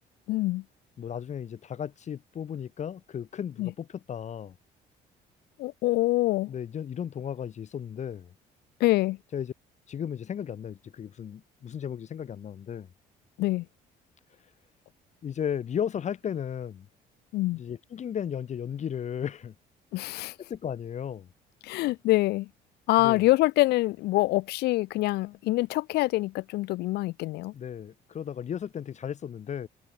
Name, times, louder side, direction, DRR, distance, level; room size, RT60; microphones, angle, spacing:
voice 1, 0.3-0.6 3.6-3.7 5.6-6.5 8.8-9.2 13.4-13.7 17.3-17.6 19.9-20.4 21.6-22.5 22.9-27.5, left 19 dB, 75° left, 0.5 m, -25 dB
voice 2, 1.0-4.6 6.5-8.3 9.3-9.5 9.9-12.9 15.2-16.9 17.6-19.5 20.4-21.3 23.0-23.3 27.5-29.7, left 8 dB, 45° left, 1.5 m, -35 dB
cardioid pair, 110°, 17 cm